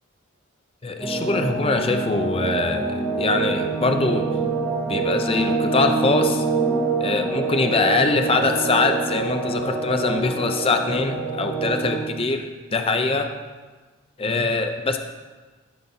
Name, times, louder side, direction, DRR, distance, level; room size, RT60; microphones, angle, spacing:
voice 1, 0.8-4.3 4.9-6.4 7.0-13.3 14.2-15.0, left 3 dB, 25° left, 5 dB, 0.5 m, -23 dB
sound 1, 1.0-12.1, right 4 dB, 10° left, 2.4 m, -25 dB
12.5 x 5.7 x 4.1 m, 1.3 s
head